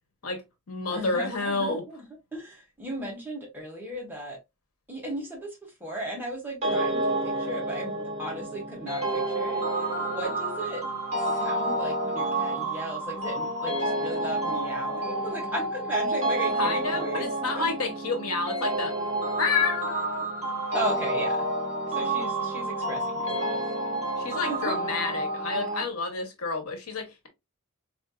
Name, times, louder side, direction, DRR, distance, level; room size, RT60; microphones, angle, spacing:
voice 1, 0.2-1.8 16.6-18.9 19.4-20.0 24.2-27.3, left 4 dB, 75° left, 1.0 m, -29 dB
voice 2, 0.9-2.0 2.3-4.4 4.9-10.9 11.4-17.3 17.5-17.7 20.7-21.6 21.9-23.6 24.5-24.8, right 1 dB, 10° right, 1.1 m, -36 dB
sound 1, 6.6-25.8, right 1 dB, 30° right, 1.6 m, -29 dB
4.1 x 2.6 x 2.3 m
head